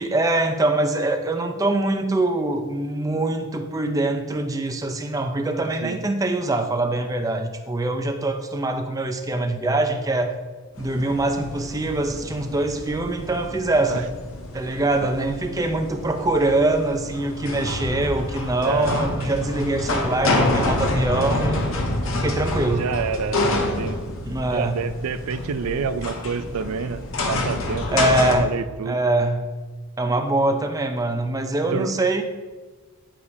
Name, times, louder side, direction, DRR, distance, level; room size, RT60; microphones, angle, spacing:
voice 1, 0.0-10.3 10.8-14.1 14.5-21.7 22.1-22.9 24.2-24.8 27.9-28.5 28.9-29.5 30.0-32.2, right 2 dB, 15° right, 6 dB, 0.4 m, -23 dB
sound 1, 10.8-28.4, left 2 dB, 65° left, 0.8 m, -28 dB
voice 2, 14.8-15.2 18.6-18.9 22.6-23.4 23.8-24.0 24.5-29.0 31.7-31.9, right 6 dB, 90° right, 13 dB, 0.4 m, -28 dB
9.8 x 4.9 x 2.7 m, 1.3 s
head